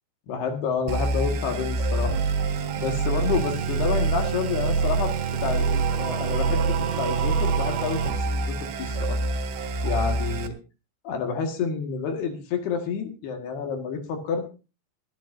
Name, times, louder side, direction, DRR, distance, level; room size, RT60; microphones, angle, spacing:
voice 1, 0.3-2.2 2.8-5.1 5.4-9.2 9.8-10.5 11.1-14.5, left 6 dB, 70° left, 4 dB, 3.7 m, -29 dB
sound 1, 0.9-10.5, right 4 dB, 65° right, 3.1 m, -25 dB
24.5 x 9.9 x 2.6 m, 0.32 s
omnidirectional pair, 4.9 m